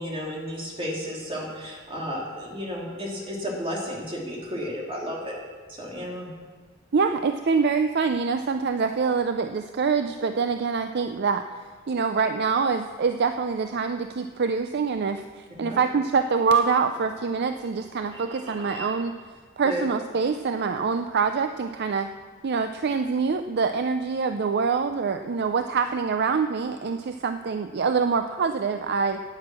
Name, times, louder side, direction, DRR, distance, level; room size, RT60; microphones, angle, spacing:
voice 1, 0.0-5.3 5.7-6.3 15.6-15.8 19.6-19.8, equal, 25° right, -3 dB, 2.8 m, -33 dB
voice 2, 6.9-11.4 11.9-19.1 19.6-22.1 22.4-29.2, right 5 dB, 50° right, 8 dB, 0.5 m, -25 dB
sound 1, 16.3-19.0, right 2 dB, 85° right, 4.5 m, -45 dB
10.5 x 9.5 x 7.5 m, 1.5 s
head